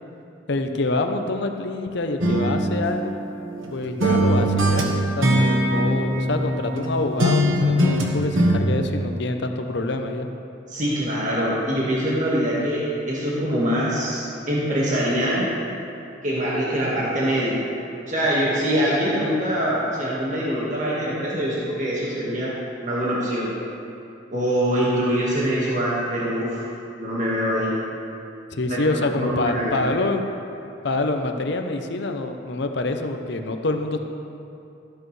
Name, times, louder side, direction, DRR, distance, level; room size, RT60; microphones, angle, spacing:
voice 1, 0.5-3.2 3.7-4.9 5.2-10.3 28.5-30.2 30.8-34.0, left 2 dB, 60° left, 5 dB, 0.8 m, -26 dB
sound 1, 2.2-3.7 4.0-6.9 7.2-8.6, equal, 90° right, 1.4 m, -21 dB
voice 2, 10.7-15.5 16.2-17.7 18.1-23.5 24.3-26.7 27.0-27.7 28.7-28.8 29.1-29.9, equal, 40° right, -6 dB, 1.8 m, -24 dB
13.5 x 12.5 x 3.3 m, 2.7 s
head